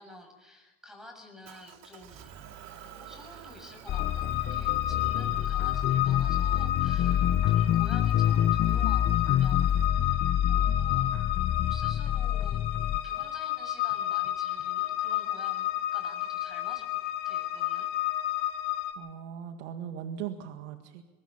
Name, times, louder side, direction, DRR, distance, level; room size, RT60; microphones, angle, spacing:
voice 1, 0.0-2.3 2.8-11.1 11.7-12.6 13.0-17.9, left 1 dB, ahead, 5 dB, 7.1 m, -50 dB
Motor vehicle (road) / Engine, 1.4-9.9, right 8 dB, 50° right, 2.4 m, -51 dB
sound 1, 3.9-18.9, left 14 dB, 70° left, 3.6 m, -31 dB
sound 2, 3.9-13.0, left 10 dB, 40° left, 1.0 m, -27 dB
voice 2, 19.0-21.0, right 9 dB, 80° right, 6 dB, 1.9 m, -39 dB
22.5 x 22.0 x 5.6 m, 1.2 s
supercardioid pair, 110°, 35 cm